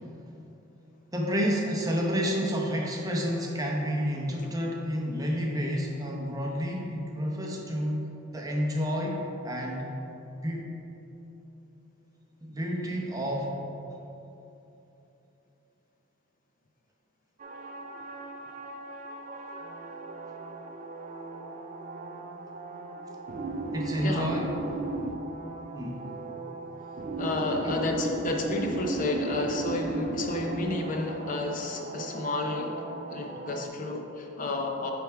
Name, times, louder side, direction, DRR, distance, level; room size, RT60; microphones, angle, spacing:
voice 1, 1.1-9.8 10.4-10.7 12.4-13.5 23.7-24.5 25.7-26.0 27.6-27.7, equal, 15° right, -1 dB, 0.7 m, -30 dB
sound 1, 17.4-33.7, right 2 dB, 35° right, 0.4 m, -36 dB
voice 2, 24.0-24.4 27.2-34.9, left 2 dB, 40° left, 1 dB, 0.5 m, -31 dB
8.9 x 3.5 x 4.5 m, 3.0 s
head